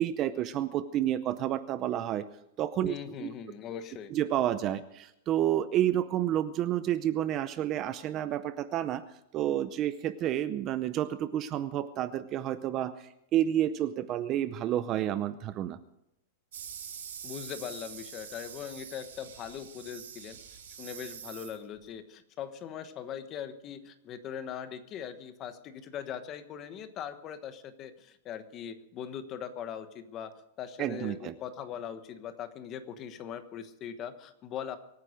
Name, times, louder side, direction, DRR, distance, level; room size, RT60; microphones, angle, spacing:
voice 1, 0.0-2.3 2.6-3.3 4.1-9.0 9.3-15.8 30.8-31.3, right 11 dB, 25° right, 13 dB, 0.6 m, -30 dB
voice 2, 2.9-4.1 17.2-20.4 20.8-34.8, left 8 dB, 25° left, 10 dB, 1.2 m, -41 dB
sound 1, 16.5-21.9, right 8 dB, 85° right, 5.9 m, -45 dB
24.0 x 9.6 x 5.1 m, 0.83 s
supercardioid pair, 170°, 0 cm